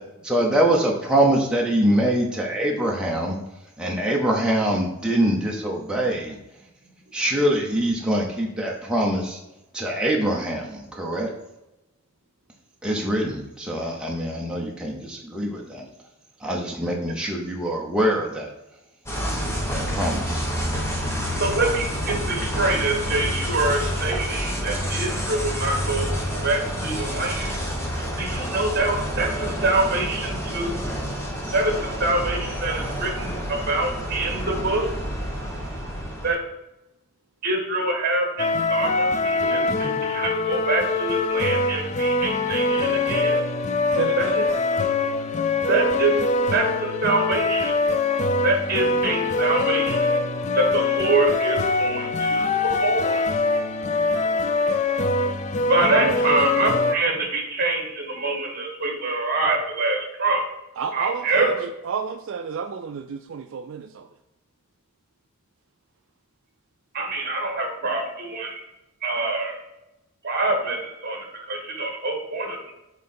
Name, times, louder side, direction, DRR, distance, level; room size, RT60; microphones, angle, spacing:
voice 1, 0.3-3.4 3.8-6.4 7.1-9.4 9.7-11.3 12.8-15.8 16.4-18.5 19.7-20.4, right 1 dB, 5° right, -2 dB, 0.8 m, -24 dB
sound 1, 19.1-36.3, equal, 10° left, 1.1 m, -28 dB
voice 2, 21.4-26.1 26.4-27.5 28.2-30.7 31.5-34.9 36.2-36.4 37.4-43.4 44.2-44.3 45.7-46.1 46.5-47.8 48.4-50.1 50.5-53.2 55.7-60.4 60.9-61.5 66.9-68.6 69.0-69.6 70.2-72.7, right 2 dB, 45° right, 2 dB, 1.5 m, -25 dB
sound 2, 38.4-57.0, left 3 dB, 30° left, 0.3 m, -23 dB
voice 3, 43.9-44.5 55.9-56.2 60.8-64.1, right 6 dB, 60° right, 6 dB, 0.3 m, -30 dB
7.4 x 3.8 x 4.3 m, 0.94 s
head